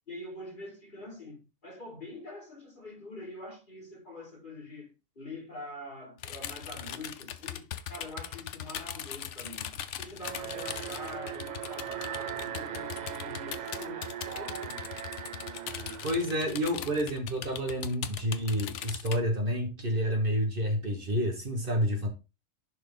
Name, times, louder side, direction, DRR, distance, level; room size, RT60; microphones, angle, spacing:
voice 1, 0.1-4.9 5.2-9.7 10.0-14.9, left 1 dB, 40° left, 2.4 m, -45 dB
sound 1, 6.2-19.2, left 10 dB, 70° left, 1.0 m, -40 dB
Alarm, 10.2-17.3, right 9 dB, 75° right, 0.4 m, -39 dB
voice 2, 16.0-22.1, equal, 45° right, 1.5 m, -29 dB
11.0 x 3.6 x 3.9 m
omnidirectional pair, 1.3 m